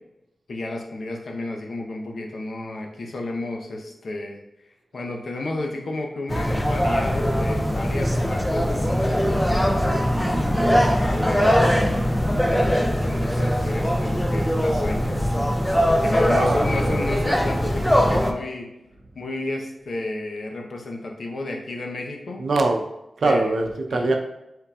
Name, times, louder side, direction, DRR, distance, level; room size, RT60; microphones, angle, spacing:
voice 1, 0.5-4.4 4.9-11.8 12.4-15.2 16.0-18.7 19.2-22.4 23.2-23.5 23.9-24.1, left 2 dB, 65° left, 1 dB, 0.8 m, -32 dB
sound 1, 6.3-18.3, equal, 5° left, 0.4 m, -21 dB
voice 2, 16.3-16.6 16.9-17.0 22.4-22.8 23.2-24.1, right 2 dB, 75° right, 3 dB, 0.6 m, -22 dB
5.5 x 3.7 x 2.4 m, 0.89 s
wide cardioid pair, 120°, 0 cm